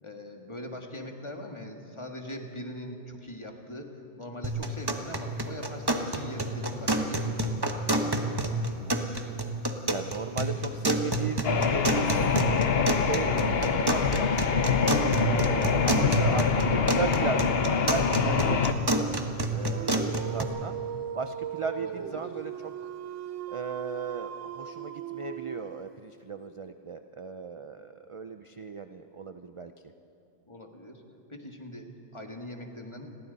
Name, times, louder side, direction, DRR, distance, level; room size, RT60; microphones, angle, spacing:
voice 1, 0.0-7.8 21.8-22.3 30.5-31.0 31.3-33.1, left 1 dB, 25° left, 2 dB, 1.8 m, -41 dB
sound 1, 4.4-20.4, right 1 dB, 20° right, 1.1 m, -29 dB
voice 2, 8.6-9.0 9.8-12.6 13.0-14.5 15.2-20.0 20.3-20.8 21.1-22.9 23.5-29.7, right 5 dB, 40° right, 8 dB, 0.4 m, -36 dB
sound 2, 11.4-18.7, left 6 dB, 55° left, 1.1 m, -25 dB
Dog, 19.6-26.0, right 9 dB, 75° right, 1.1 m, -38 dB
30.0 x 21.5 x 4.1 m, 2.8 s
omnidirectional pair, 1.3 m